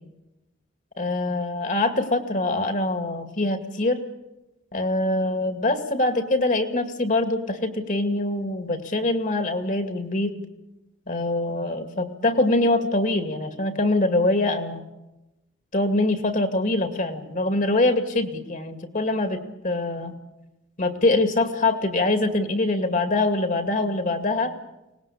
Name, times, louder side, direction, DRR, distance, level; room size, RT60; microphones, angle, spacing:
voice 1, 1.0-4.0 4.7-10.3 11.1-14.8 15.7-20.1 20.8-24.5, left 2 dB, 45° left, 7 dB, 2.3 m, -24 dB
24.0 x 19.5 x 8.6 m, 0.99 s
head